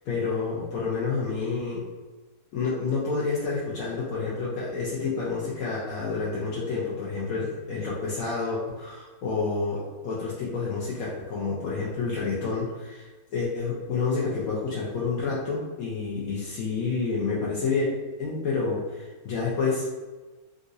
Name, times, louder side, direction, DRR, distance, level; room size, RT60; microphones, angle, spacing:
voice 1, 0.1-1.9 2.5-17.9 18.2-20.0, left 4 dB, 75° left, -6 dB, 1.1 m, -29 dB
3.8 x 2.5 x 2.6 m, 1.3 s
omnidirectional pair, 1.5 m